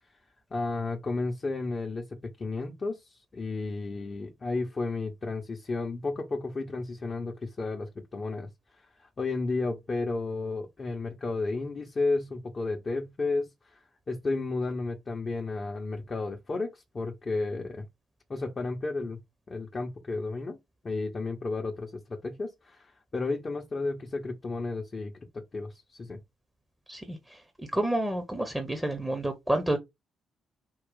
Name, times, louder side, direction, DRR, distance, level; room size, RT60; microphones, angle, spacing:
voice 1, 0.5-8.5 9.0-13.8 14.1-17.8 18.3-19.2 19.5-20.6 20.8-26.2, left 3 dB, 35° left, 0.9 m, -33 dB
voice 2, 26.9-29.8, right 1 dB, 10° right, 1.0 m, -30 dB
4.8 x 2.4 x 3.9 m
figure-of-eight pair, 40°, 0 cm